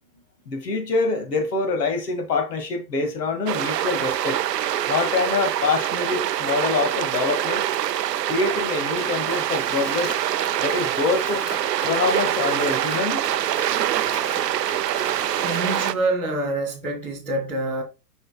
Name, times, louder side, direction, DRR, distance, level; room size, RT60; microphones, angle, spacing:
voice 1, 0.5-4.4 4.9-7.6 8.3-10.2 10.6-11.4 11.8-13.3, left 4 dB, 70° left, 1.9 m, -25 dB
sound 1, 3.5-15.9, right 12 dB, 75° right, 0.6 m, -25 dB
Mechanisms, 8.9-16.0, left 2 dB, 25° left, 1.7 m, -39 dB
voice 2, 15.4-17.8, right 2 dB, 5° left, 0.3 m, -26 dB
7.7 x 5.5 x 2.2 m
hypercardioid pair, 120°, 49 cm